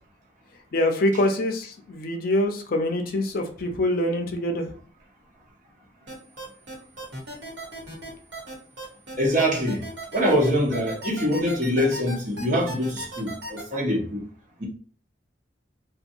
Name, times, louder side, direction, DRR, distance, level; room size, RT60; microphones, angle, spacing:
voice 1, 0.7-4.7, left 1 dB, 55° left, 0.5 m, -25 dB
sound 1, 6.1-13.6, right 1 dB, 70° right, 1.1 m, -37 dB
voice 2, 9.2-9.8 10.1-14.3 14.6-14.7, equal, 45° right, 1.0 m, -24 dB
2.7 x 2.2 x 2.6 m
head